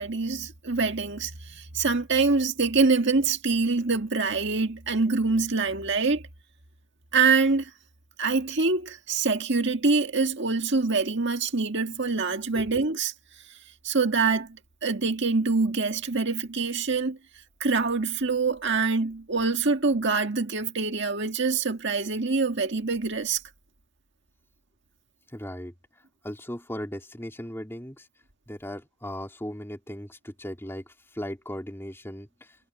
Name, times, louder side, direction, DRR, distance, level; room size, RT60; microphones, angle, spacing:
voice 1, 0.0-6.2 7.1-7.7 8.2-13.1 13.8-14.6 14.8-17.2 17.6-23.4, right 4 dB, 55° right, 1.9 m, -25 dB
voice 2, 25.3-25.7 26.2-28.1 28.5-32.6, equal, 10° left, 3.5 m, -37 dB
head